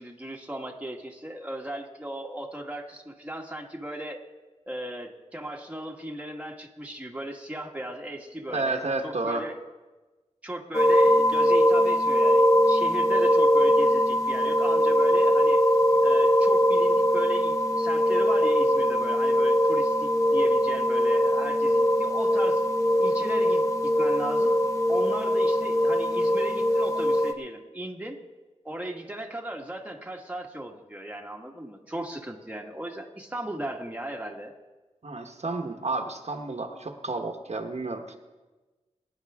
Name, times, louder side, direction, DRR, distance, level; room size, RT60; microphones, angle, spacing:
voice 1, 0.0-4.2 4.7-9.6 10.4-15.6 16.0-22.6 23.0-24.6 24.9-28.2 28.6-34.6, right 1 dB, 10° right, 0 dB, 1.6 m, -37 dB
voice 2, 8.5-9.4 35.0-38.2, right 3 dB, 60° right, 4 dB, 1.2 m, -31 dB
sound 1, 10.7-27.3, equal, 25° left, 1.3 m, -22 dB
23.5 x 9.9 x 3.6 m, 1.2 s
wide cardioid pair, 60°, 12 cm